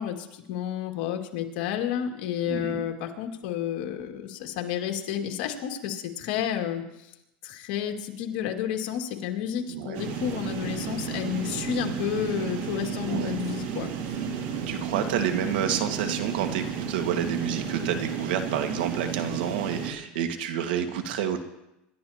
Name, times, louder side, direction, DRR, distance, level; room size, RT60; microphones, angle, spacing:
voice 1, 0.0-7.1 7.4-13.9, left 9 dB, 70° left, 2 dB, 2.1 m, -31 dB
voice 2, 2.5-2.8 9.7-10.0 13.1-13.4 14.7-21.4, right 9 dB, 85° right, 6 dB, 1.7 m, -29 dB
sound 1, 9.9-19.9, right 7 dB, 65° right, 2.6 m, -33 dB
27.0 x 12.0 x 2.9 m, 0.89 s
supercardioid pair, 135°, 5 cm